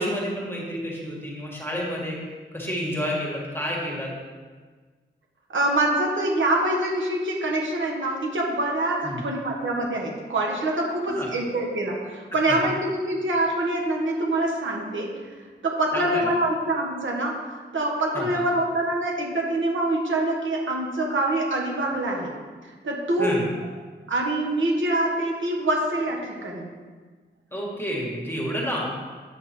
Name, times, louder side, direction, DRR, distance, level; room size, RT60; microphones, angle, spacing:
voice 1, 0.0-2.2 2.5-4.1 9.0-9.2 11.1-11.3 12.5-12.6 15.9-16.2 18.1-18.3 23.2-23.5 27.5-28.9, equal, 10° left, -4 dB, 1.7 m, -29 dB
voice 2, 5.5-15.1 15.6-17.5 17.7-22.4 22.6-23.3 24.1-26.6, right 1 dB, 80° right, -1 dB, 1.6 m, -25 dB
8.2 x 6.1 x 4.4 m, 1.5 s
wide cardioid pair, 105°, 20 cm